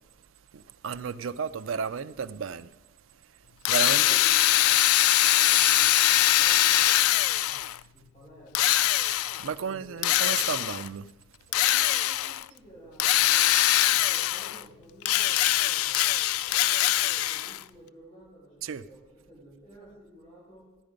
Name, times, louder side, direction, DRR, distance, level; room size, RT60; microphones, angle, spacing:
voice 1, 0.5-2.7 3.7-4.0 9.4-11.1 18.6-18.8, right 6 dB, 65° right, 0.4 m, -33 dB
Drill, 3.7-7.8 8.5-9.5 10.0-10.9 11.5-12.4 13.0-14.6 15.0-17.6, left 14 dB, 90° left, 0.3 m, -23 dB
voice 2, 3.9-4.7 5.2-7.4 7.9-8.7 9.5-10.4 11.5-13.5 13.9-20.7, right 1 dB, 30° left, 5.0 m, -52 dB
14.5 x 9.7 x 5.1 m
head